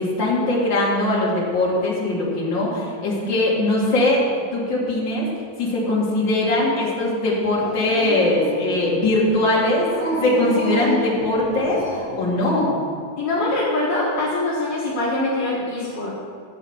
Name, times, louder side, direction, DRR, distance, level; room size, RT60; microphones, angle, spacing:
voice 1, 0.0-4.2 4.5-5.3 5.6-9.9 10.2-12.8, left 2 dB, 40° left, -5 dB, 1.7 m, -21 dB
Dog, 7.6-9.1 9.9-12.2, right 1 dB, 25° right, 1.7 m, -29 dB
voice 2, 13.2-16.1, left 2 dB, 70° left, -8 dB, 1.4 m, -23 dB
12.5 x 5.1 x 8.0 m, 2.1 s
omnidirectional pair, 5.5 m